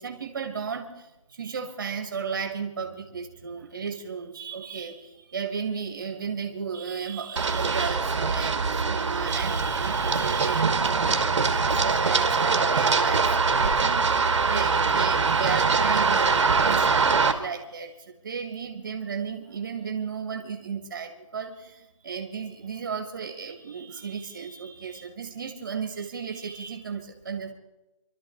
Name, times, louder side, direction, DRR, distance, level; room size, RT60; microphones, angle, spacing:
voice 1, 0.0-11.2 11.6-14.0 14.3-27.5, right 6 dB, 35° right, 5 dB, 1.6 m, -34 dB
Run, 7.4-17.3, right 4 dB, 55° right, 1.4 m, -23 dB
26.0 x 12.5 x 3.9 m, 1.0 s
hypercardioid pair, 175°, 18 cm